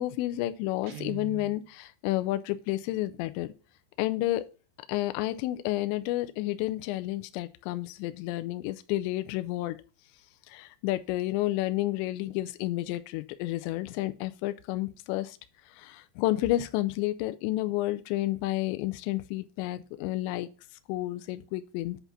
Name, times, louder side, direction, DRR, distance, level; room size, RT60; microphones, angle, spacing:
voice 1, 0.0-3.5 4.0-4.4 4.9-9.8 10.5-15.4 15.7-20.5 20.9-22.0, left 16 dB, 80° left, 2.7 m, -30 dB
Guitar, 0.8-1.6, right 15 dB, 90° right, 2.3 m, -41 dB
8.1 x 4.0 x 5.9 m
omnidirectional pair, 5.6 m